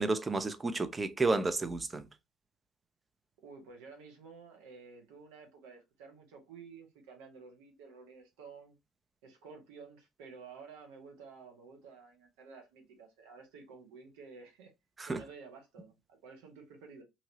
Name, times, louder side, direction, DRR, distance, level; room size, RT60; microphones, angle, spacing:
voice 1, 0.0-2.1 15.0-15.2, right 3 dB, 25° right, 0.5 m, -31 dB
voice 2, 3.4-8.8 9.2-14.7 15.0-17.0, right 5 dB, 75° right, 1.0 m, -52 dB
2.8 x 2.7 x 2.8 m
hypercardioid pair, 65°, 0 cm